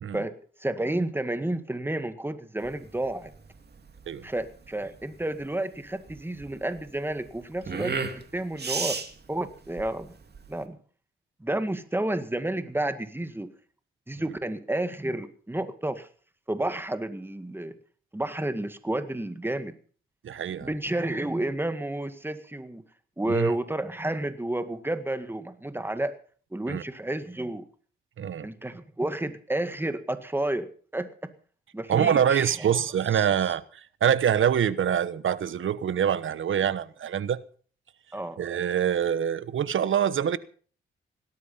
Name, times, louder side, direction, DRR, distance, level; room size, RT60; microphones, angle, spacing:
voice 1, 0.1-3.3 4.2-9.0 9.3-10.1 10.5-10.8 11.4-13.5 14.1-16.1 16.5-17.7 18.1-19.7 20.6-22.8 23.2-26.1 26.5-27.7 28.4-31.1 31.7-32.7 33.1-33.3 38.1-38.4, right 1 dB, 10° right, 1.9 m, -31 dB
sound 1, 2.6-10.6, right 5 dB, 50° right, 2.5 m, -35 dB
voice 2, 20.2-20.7 23.3-23.5 26.7-26.8 28.2-28.5 31.9-37.4 38.4-40.4, right 9 dB, 70° right, 1.1 m, -25 dB
18.0 x 12.5 x 5.7 m
cardioid pair, 65°, 21 cm